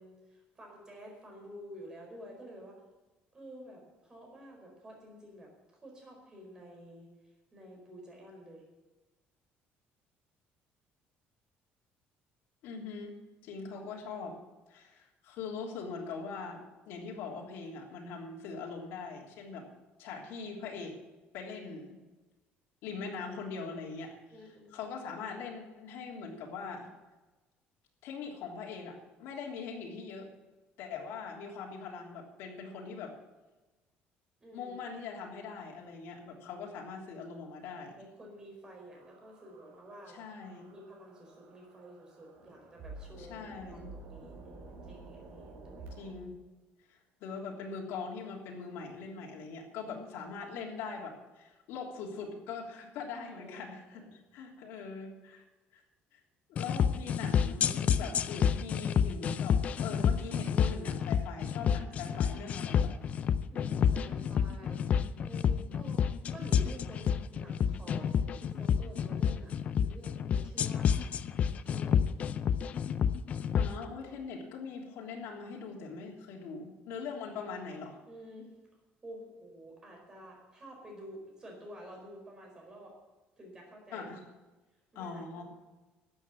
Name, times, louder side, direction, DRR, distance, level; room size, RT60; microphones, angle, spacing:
voice 1, 0.0-2.8 3.3-8.6 13.5-13.7 24.3-24.9 34.4-34.8 35.4-35.6 37.8-40.2 40.7-45.9 49.8-50.0 53.4-54.1 62.1-62.2 63.5-64.8 65.2-71.1 71.6-72.0 78.1-78.5 79.0-82.9 83.4-84.1 84.9-85.4, equal, 20° right, 0 dB, 4.6 m, -50 dB
voice 2, 12.6-13.1 13.4-14.4 14.7-19.6 20.0-21.0 21.3-22.0 22.8-24.1 24.7-26.9 28.0-30.3 30.8-33.1 34.5-37.9 40.1-40.6 43.2-43.9 46.0-46.3 46.9-55.4 55.7-55.8 56.1-56.2 56.5-63.0 73.5-78.0 83.9-84.2 84.9-85.4, left 5 dB, 75° left, -2 dB, 3.3 m, -42 dB
sound 1, 38.9-46.1, right 3 dB, 65° right, 4.3 m, -51 dB
sound 2, 56.6-73.7, left 8 dB, 35° left, 0.5 m, -29 dB
13.5 x 8.1 x 9.1 m, 1.2 s
cardioid pair, 170°, 4 cm